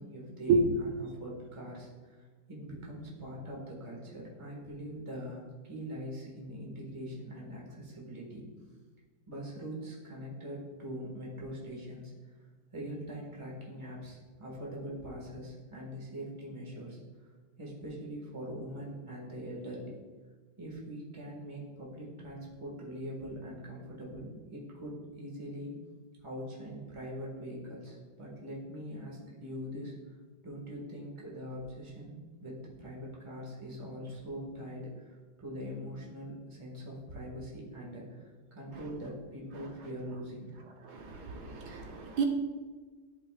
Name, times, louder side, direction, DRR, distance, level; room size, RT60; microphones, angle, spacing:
voice 1, 0.0-8.4 9.3-12.1 12.7-17.0 17.6-19.9 20.6-25.7 26.2-29.9 30.4-40.5, equal, 15° right, -4 dB, 1.4 m, -42 dB
voice 2, 40.8-42.2, right 5 dB, 65° right, 2 dB, 1.2 m, -30 dB
11.0 x 5.0 x 2.4 m, 1.4 s
omnidirectional pair, 2.2 m